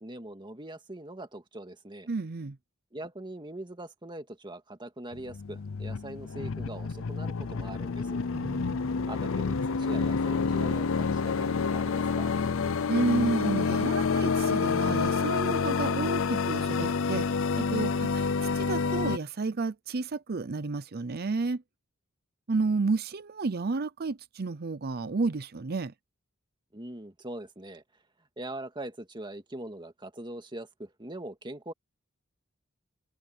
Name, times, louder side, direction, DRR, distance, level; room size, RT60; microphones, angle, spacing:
voice 1, 0.0-2.1 2.9-8.2 9.1-12.3 26.7-27.8 28.4-31.7, right 1 dB, 25° right, 2.1 m, -42 dB
voice 2, 2.1-2.6 8.3-8.9 12.9-17.3 17.6-21.6 22.5-25.9, right 3 dB, 50° right, 0.6 m, -31 dB
sound 1, 5.1-19.2, left 5 dB, 70° left, 0.6 m, -28 dB
open air
head